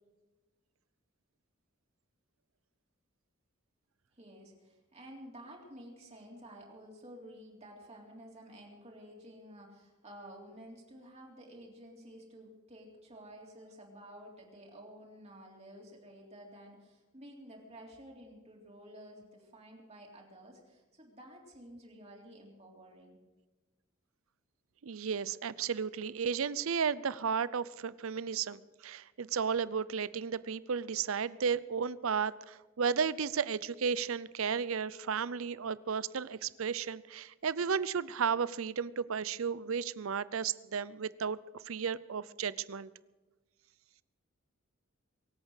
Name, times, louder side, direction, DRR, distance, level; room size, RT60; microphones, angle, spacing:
voice 1, 4.1-23.2, equal, 30° right, -1 dB, 3.5 m, -52 dB
voice 2, 24.8-41.4 41.6-42.9, right 6 dB, 70° right, 19 dB, 0.6 m, -33 dB
24.0 x 8.8 x 6.5 m, 1.2 s
head